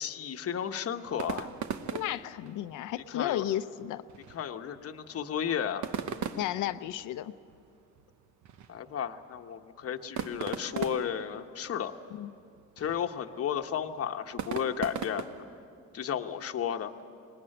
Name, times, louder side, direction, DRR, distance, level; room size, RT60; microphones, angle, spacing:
voice 1, 0.0-1.5 3.1-3.5 4.3-5.9 8.7-11.9 12.8-15.3 15.9-16.9, left 8 dB, 50° left, 6 dB, 1.0 m, -33 dB
sound 1, 1.0-15.7, right 7 dB, 70° right, 1.0 m, -41 dB
voice 2, 1.9-4.0 6.3-7.3 12.1-12.3, left 13 dB, 85° left, 14 dB, 0.7 m, -33 dB
20.5 x 19.5 x 8.9 m, 2.5 s
cardioid pair, 90°, 30 cm